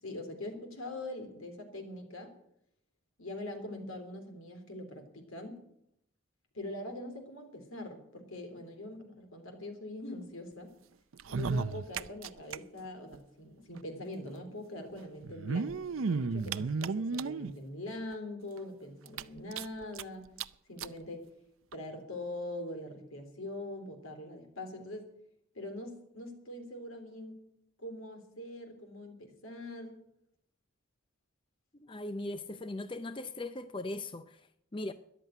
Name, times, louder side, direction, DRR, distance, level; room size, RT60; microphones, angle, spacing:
voice 1, 0.0-2.3 3.2-5.7 6.5-10.7 11.3-20.3 20.7-21.3 21.7-25.1 25.5-27.5 27.8-30.0, left 1 dB, 75° left, 3.5 m, -43 dB
sound 1, 11.1-12.6 12.8-12.9 13.1-13.2 14.3-14.4 15.2-17.5 18.1-18.2 18.6-18.7 19.1-20.0 20.4-20.5 20.8-20.9 21.7-21.8, right 4 dB, 70° right, 0.5 m, -33 dB
voice 2, 31.8-34.9, left 2 dB, 25° left, 0.5 m, -39 dB
14.0 x 11.0 x 9.3 m
head